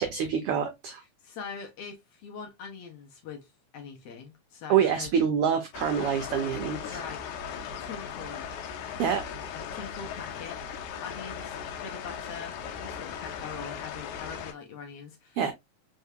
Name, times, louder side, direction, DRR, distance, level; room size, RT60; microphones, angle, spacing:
voice 1, 0.0-1.0 4.7-7.0 9.0-9.2 15.4-15.5, right 8 dB, 85° right, 1.2 m, -26 dB
voice 2, 1.0-5.1 6.9-7.5 7.8-8.5 9.5-10.6 11.0-11.6 11.8-15.5, left 6 dB, 70° left, 1.6 m, -43 dB
sound 1, 5.7-14.5, left 7 dB, 85° left, 2.2 m, -38 dB
4.5 x 3.6 x 2.6 m
omnidirectional pair, 3.4 m